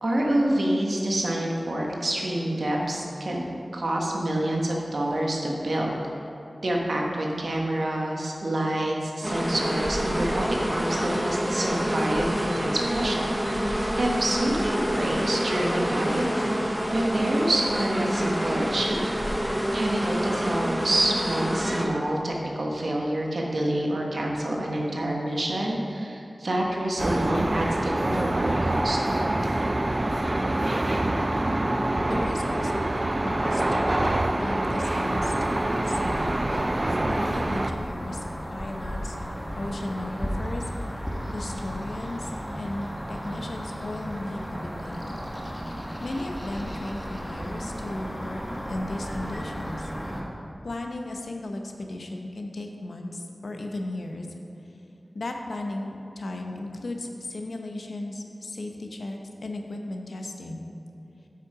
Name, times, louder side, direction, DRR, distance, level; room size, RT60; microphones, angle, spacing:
voice 1, 0.0-3.4 3.7-5.9 6.6-16.3 16.9-19.0 19.7-29.0, right 1 dB, 70° right, -1 dB, 1.3 m, -27 dB
sound 1, 9.2-21.8, equal, 10° right, 1.0 m, -27 dB
sound 2, 27.0-37.7, right 1 dB, 35° right, 0.4 m, -25 dB
voice 2, 32.0-33.6 34.4-36.6 37.0-39.1 39.6-40.6 41.3-45.1 46.0-48.4 48.7-49.9 50.6-54.3 55.1-60.7, left 2 dB, 80° left, 3 dB, 0.8 m, -35 dB
sound 3, 34.8-50.2, equal, 10° left, 1.3 m, -35 dB
8.5 x 5.7 x 4.9 m, 3.0 s
wide cardioid pair, 60°, 0 cm